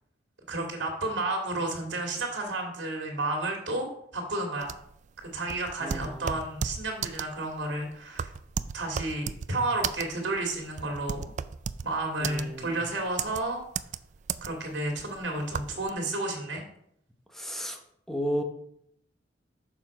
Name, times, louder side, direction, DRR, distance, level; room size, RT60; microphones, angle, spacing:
voice 1, 0.5-4.7 5.3-8.3 8.7-11.3 11.8-13.6 14.4-16.6, right 2 dB, 70° right, 2 dB, 2.4 m, -31 dB
sound 1, 4.6-15.9, right 7 dB, 40° right, 0.3 m, -34 dB
voice 2, 5.8-6.3 12.2-12.8 17.3-17.8 18.1-18.4, equal, ahead, 3 dB, 0.9 m, -33 dB
6.9 x 6.0 x 4.9 m, 0.72 s
head